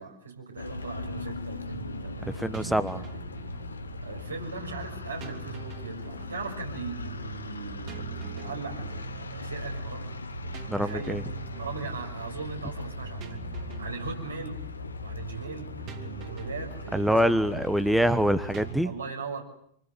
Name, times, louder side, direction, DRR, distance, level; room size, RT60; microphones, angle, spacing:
voice 1, 0.0-3.4 4.0-10.2 10.7-13.4 13.8-14.6 15.0-17.4 18.8-19.4, right 5 dB, 75° right, 1 dB, 6.2 m, -39 dB
sound 1, 0.6-18.7, left 3 dB, 75° left, 1.4 m, -39 dB
sound 2, 0.8-18.8, right 7 dB, 35° right, 2.7 m, -43 dB
voice 2, 2.3-3.0 10.7-11.2 16.9-18.9, equal, ahead, 12 dB, 1.2 m, -25 dB
27.0 x 25.0 x 7.9 m, 0.68 s
figure-of-eight pair, 90°, 0 cm